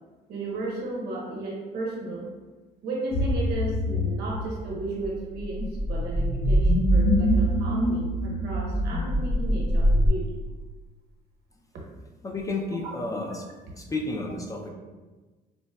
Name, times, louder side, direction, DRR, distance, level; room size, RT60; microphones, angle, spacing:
voice 1, 0.3-2.3 2.8-10.3, right 2 dB, 70° right, -3 dB, 0.9 m, -34 dB
sound 1, 3.1-10.1, equal, 55° left, 1.3 m, -24 dB
voice 2, 12.2-13.5 13.7-14.7, left 2 dB, 20° left, 1 dB, 0.3 m, -31 dB
4.0 x 2.1 x 2.2 m, 1.3 s
cardioid pair, 110°, 17 cm